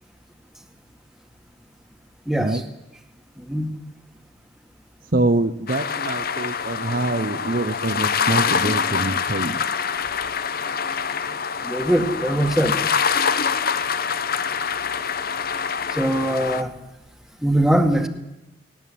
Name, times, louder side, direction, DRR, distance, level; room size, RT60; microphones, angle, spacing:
voice 1, 2.3-2.6 3.5-3.7 11.6-12.8 15.9-16.7 17.4-18.1, right 1 dB, ahead, 6 dB, 2.0 m, -21 dB
voice 2, 5.1-9.6, right 2 dB, 45° right, 9 dB, 1.0 m, -24 dB
sound 1, 5.7-16.6, left 6 dB, 50° left, 1.0 m, -25 dB
19.0 x 18.0 x 9.3 m, 0.91 s
head